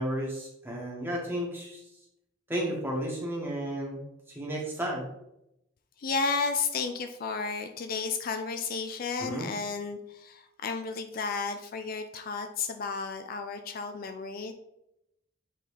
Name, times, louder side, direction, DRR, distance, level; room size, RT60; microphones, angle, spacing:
voice 1, 0.0-1.8 2.5-4.0 4.3-5.0 9.2-9.5, right 1 dB, 10° right, -3 dB, 1.5 m, -33 dB
voice 2, 6.0-14.5, left 4 dB, 45° left, 7 dB, 0.4 m, -32 dB
7.5 x 4.0 x 3.4 m, 0.84 s
head